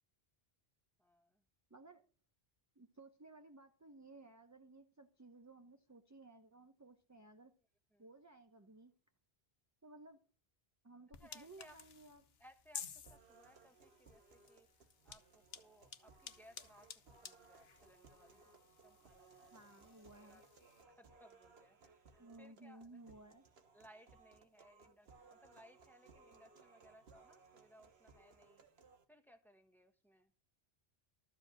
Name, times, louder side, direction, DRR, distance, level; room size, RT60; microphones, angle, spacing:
voice 1, 1.0-1.4 7.9-8.1 11.2-11.8 12.4-18.4 18.7-20.4 21.0-23.0 23.7-28.6 29.1-30.3, equal, ahead, 1.3 m, -65 dB
voice 2, 1.7-2.0 2.8-7.5 8.0-8.9 9.8-10.2 10.8-12.2 19.5-20.4 22.2-23.4, right 2 dB, 20° right, 0.8 m, -58 dB
sound 1, 11.1-20.8, left 7 dB, 80° left, 1.2 m, -55 dB
sound 2, 13.0-29.0, right 4 dB, 85° right, 1.5 m, -64 dB
13.5 x 5.1 x 7.4 m
omnidirectional pair, 1.0 m